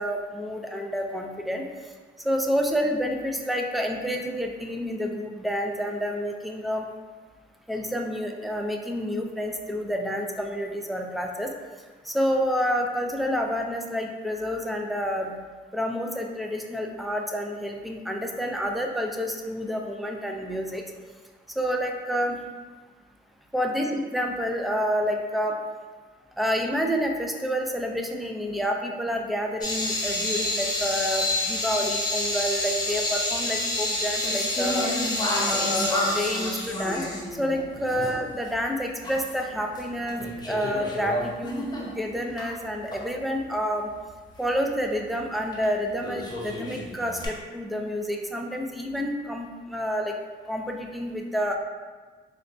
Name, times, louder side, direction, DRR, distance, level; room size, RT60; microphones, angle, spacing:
voice 1, 0.0-1.6 2.2-6.9 7.7-11.5 12.0-15.3 15.7-20.8 21.6-22.4 23.5-25.6 26.4-34.9 35.5-37.0 37.4-43.9 44.4-50.2 50.5-51.6, equal, ahead, 2 dB, 0.3 m, -29 dB
sound 1, 29.6-38.2 38.5-38.6 39.0-39.8 40.1-42.5 42.9-43.0 45.5-45.6 46.0-47.3, left 1 dB, 20° left, 0.7 m, -29 dB
4.0 x 2.2 x 2.5 m, 1.4 s
cardioid pair, 90°, 20 cm